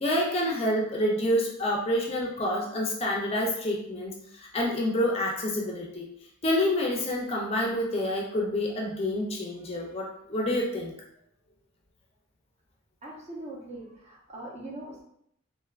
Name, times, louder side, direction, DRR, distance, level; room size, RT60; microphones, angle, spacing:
voice 1, 0.0-6.1 6.4-10.9, left 1 dB, 30° left, -1 dB, 0.5 m, -28 dB
voice 2, 13.0-15.0, right 1 dB, 35° right, -4 dB, 0.7 m, -41 dB
3.3 x 2.5 x 2.4 m, 0.73 s
head